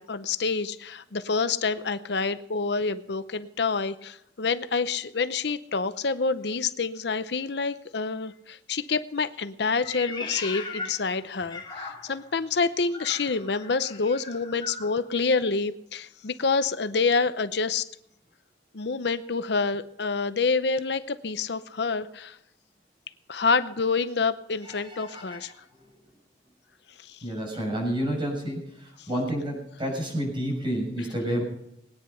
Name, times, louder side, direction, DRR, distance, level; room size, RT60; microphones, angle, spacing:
voice 1, 0.0-17.9 18.7-22.4 23.3-25.5 27.0-27.2 29.0-29.1, left 4 dB, 65° left, 12 dB, 0.7 m, -27 dB
Meow, 9.8-12.3 12.9-15.0, left 4 dB, 25° left, 2.4 m, -38 dB
voice 2, 24.8-25.4 27.2-28.6 29.1-31.4, equal, 25° right, -1 dB, 6.8 m, -29 dB
20.5 x 9.8 x 5.6 m, 0.80 s
head